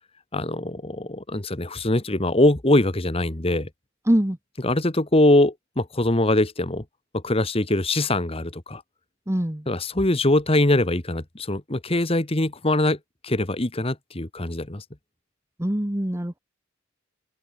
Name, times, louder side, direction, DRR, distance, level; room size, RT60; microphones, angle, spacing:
voice 1, 0.3-3.7 4.6-6.8 7.1-8.8 9.7-13.0 13.2-14.8, left 1 dB, 25° left, 1.5 m, -22 dB
voice 2, 4.1-4.4 9.3-9.6 15.6-16.4, equal, 15° right, 1.1 m, -23 dB
open air
head